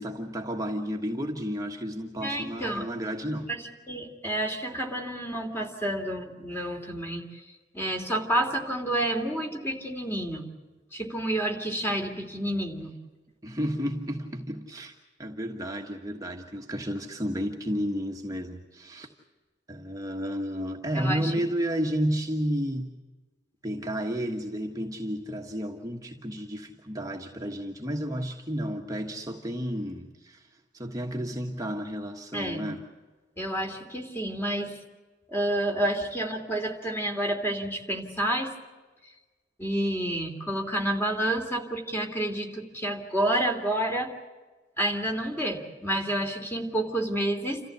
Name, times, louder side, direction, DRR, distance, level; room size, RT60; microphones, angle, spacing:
voice 1, 0.0-3.5 13.4-14.9 15.2-19.1 19.7-22.9 23.6-32.8, equal, 20° right, 1 dB, 1.4 m, -32 dB
voice 2, 2.2-2.9 3.5-7.4 7.7-10.4 10.9-12.9 20.9-21.3 32.3-32.7 33.4-34.8 35.3-38.5 39.6-44.1 44.8-47.6, right 1 dB, 15° left, 3 dB, 3.0 m, -29 dB
28.5 x 14.5 x 8.1 m, 1.3 s
head